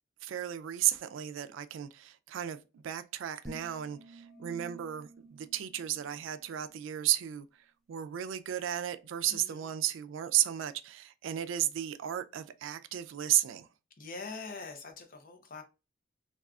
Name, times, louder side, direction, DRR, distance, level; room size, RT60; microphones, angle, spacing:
voice 1, 0.2-7.5 7.9-13.7, right 12 dB, 80° right, 0.3 m, -33 dB
sound 1, 3.5-6.8, right 1 dB, ahead, 0.4 m, -51 dB
voice 2, 9.3-9.7 14.0-15.6, left 4 dB, 45° left, 0.6 m, -44 dB
3.5 x 2.3 x 2.3 m
head